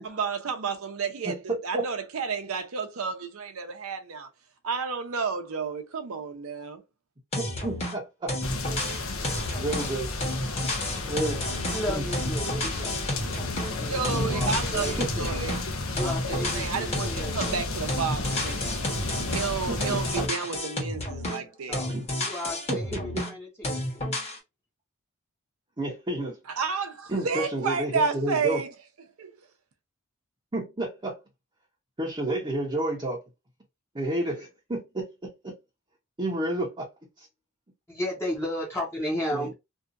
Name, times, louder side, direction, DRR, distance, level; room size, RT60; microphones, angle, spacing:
voice 1, 0.0-4.3 4.6-6.8 13.9-15.7 16.0-18.6 19.3-21.8 26.5-28.7 29.2-29.3, right 5 dB, 75° right, 0.6 m, -31 dB
voice 2, 1.2-1.8 7.6-8.3 9.6-10.1 10.9-11.4 11.9-12.0 15.0-15.1 19.7-20.0 21.9-22.1 22.7-23.2 25.8-26.4 27.1-28.6 30.5-31.2 32.0-33.2 33.9-35.5 36.2-36.9 37.2-37.3 39.3-39.5, right 1 dB, 25° right, 0.7 m, -30 dB
sound 1, 7.3-8.0 8.3-13.8 14.0-15.7 16.0-17.6 17.9-21.5 21.7-23.4 23.6-24.4, left 1 dB, 30° left, 1.1 m, -31 dB
sound 2, 8.4-20.3, left 2 dB, 70° left, 0.6 m, -32 dB
voice 3, 11.7-15.3 15.9-17.5 21.7-24.0 37.9-39.5, equal, 10° left, 0.8 m, -34 dB
2.7 x 2.4 x 2.4 m
head